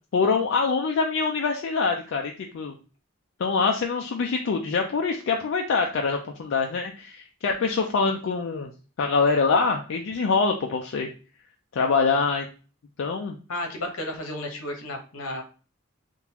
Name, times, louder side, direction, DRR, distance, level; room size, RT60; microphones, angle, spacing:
voice 1, 0.1-2.7 3.4-8.7 9.0-11.1 11.7-12.5 13.0-13.4, left 4 dB, 65° left, 2 dB, 0.4 m, -24 dB
voice 2, 13.5-15.4, left 1 dB, 90° left, 3 dB, 0.9 m, -33 dB
3.7 x 2.4 x 2.8 m, 0.36 s
head